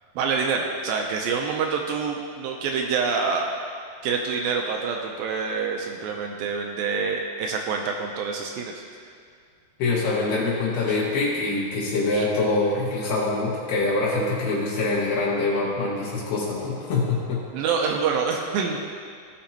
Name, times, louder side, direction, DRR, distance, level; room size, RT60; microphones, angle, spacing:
voice 1, 0.2-3.5 4.0-8.7 12.1-12.3 17.5-18.8, right 5 dB, 80° right, 1 dB, 2.3 m, -26 dB
voice 2, 9.8-17.4, left 3 dB, 80° left, -5 dB, 3.8 m, -24 dB
17.0 x 5.8 x 2.9 m, 2.1 s
omnidirectional pair, 4.5 m